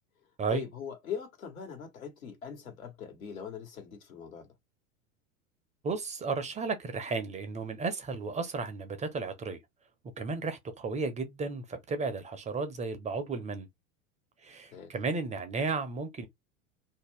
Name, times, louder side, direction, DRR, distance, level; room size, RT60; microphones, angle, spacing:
voice 1, 0.5-4.5 14.7-14.9, left 7 dB, 80° left, 1.4 m, -41 dB
voice 2, 5.8-9.6 10.2-13.7 14.4-16.3, right 4 dB, 15° right, 0.5 m, -34 dB
2.6 x 2.2 x 3.4 m
figure-of-eight pair, 85°, 41 cm